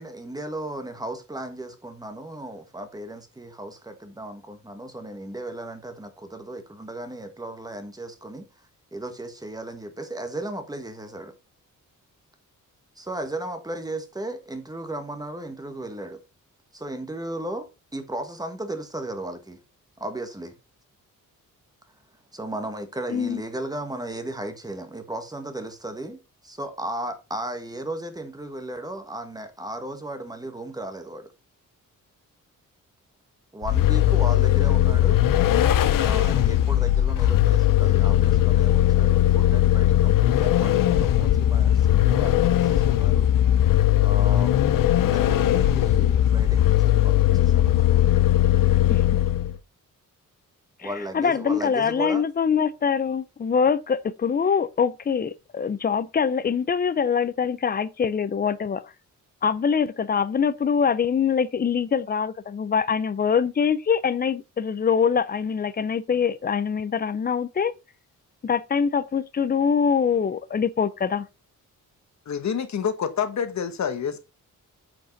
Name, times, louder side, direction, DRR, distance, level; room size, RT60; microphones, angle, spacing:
voice 1, 0.0-8.4 8.9-11.3 13.0-16.2 16.7-19.6 20.0-20.6 22.3-31.3 33.5-35.2 36.0-43.3 44.0-44.8 45.1-48.0 50.8-52.2, right 1 dB, 10° right, 1.4 m, -35 dB
voice 2, 23.1-23.4 48.9-49.0 50.8-58.9 59.4-67.7 68.4-71.3, left 6 dB, 30° left, 0.5 m, -24 dB
Vehicle, 33.6-49.6, left 12 dB, 75° left, 0.7 m, -19 dB
voice 3, 72.3-74.2, left 7 dB, 55° left, 1.3 m, -27 dB
8.8 x 5.3 x 4.0 m
wide cardioid pair, 135°, 33 cm